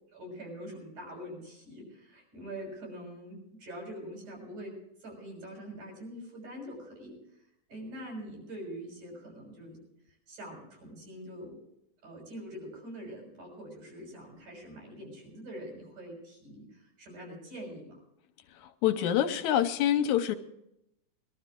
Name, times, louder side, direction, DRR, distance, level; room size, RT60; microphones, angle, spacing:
voice 1, 0.1-9.8 10.3-11.6 12.0-18.0, equal, 75° right, 0 dB, 8.1 m, -44 dB
voice 2, 18.6-20.4, left 10 dB, 75° left, 8 dB, 2.1 m, -26 dB
22.5 x 12.5 x 3.7 m, 0.80 s
omnidirectional pair, 3.5 m